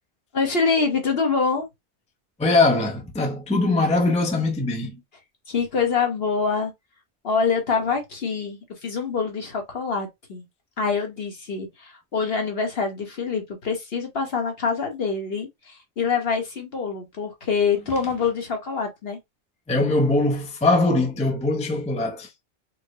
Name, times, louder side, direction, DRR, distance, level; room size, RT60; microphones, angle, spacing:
voice 1, 0.3-1.7 5.5-6.7 7.2-10.4 10.8-19.2, left 5 dB, 60° left, 1.4 m, -25 dB
voice 2, 2.4-5.0 19.7-22.3, left 2 dB, 10° left, 0.5 m, -21 dB
4.4 x 2.1 x 3.0 m
omnidirectional pair, 1.2 m